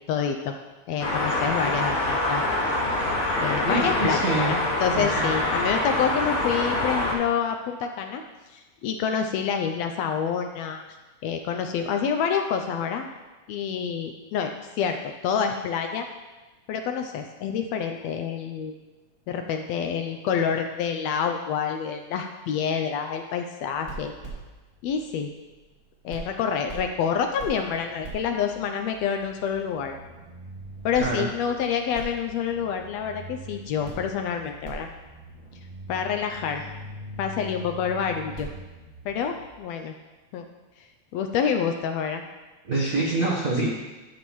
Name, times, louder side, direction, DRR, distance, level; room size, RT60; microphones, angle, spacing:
voice 1, 0.1-0.6 0.9-2.4 3.4-8.2 8.5-10.8 11.2-13.1 13.5-14.5 14.8-16.0 16.7-18.7 19.3-24.1 24.8-25.3 26.0-30.0 30.8-34.9 35.9-36.7 37.2-38.5 39.0-39.9 40.3-40.4 40.8-40.9 41.1-42.2, left 7 dB, 80° left, 5 dB, 1.6 m, -27 dB
sound 1, 1.0-7.1, left 2 dB, 55° left, 2.4 m, -25 dB
voice 2, 3.6-4.5 4.9-5.3 31.0-31.3 42.6-43.7, right 2 dB, 65° right, -5 dB, 0.8 m, -26 dB
sound 2, 23.7-25.8 26.1-39.6, right 2 dB, 20° right, 2.3 m, -42 dB
12.5 x 7.2 x 3.1 m, 1.2 s
omnidirectional pair, 3.3 m